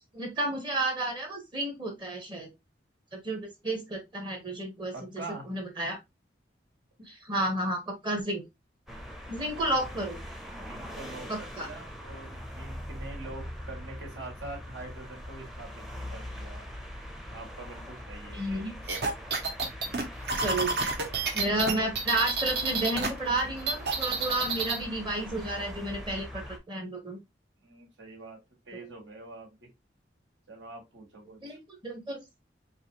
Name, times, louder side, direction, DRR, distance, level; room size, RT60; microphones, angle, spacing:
voice 1, 0.1-2.5 3.1-5.2 5.5-6.0 7.0-8.4 9.3-10.2 11.3-11.7 18.3-18.7 20.4-20.7 21.3-27.2 28.7-28.9 31.4-32.2, right 1 dB, 25° right, 3 dB, 0.9 m, -32 dB
voice 2, 4.9-5.5 9.6-9.9 10.7-16.7 17.3-18.7 27.6-28.4 28.7-29.7 30.5-31.6, right 2 dB, 75° right, -1 dB, 1.8 m, -45 dB
sound 1, 8.9-26.6, equal, ahead, 0.6 m, -42 dB
sound 2, 18.9-23.1 23.4-24.8, right 4 dB, 60° right, 0.9 m, -29 dB
4.6 x 2.6 x 2.8 m, 0.21 s
head